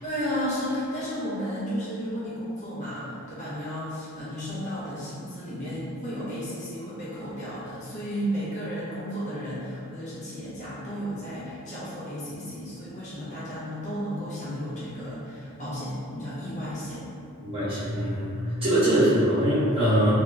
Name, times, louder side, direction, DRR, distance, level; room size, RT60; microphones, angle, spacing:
voice 1, 0.0-17.0, equal, 35° left, -11 dB, 0.8 m, -33 dB
voice 2, 17.4-18.3 18.6-20.1, right 1 dB, 25° right, -11 dB, 1.0 m, -22 dB
2.8 x 2.5 x 3.3 m, 2.6 s
head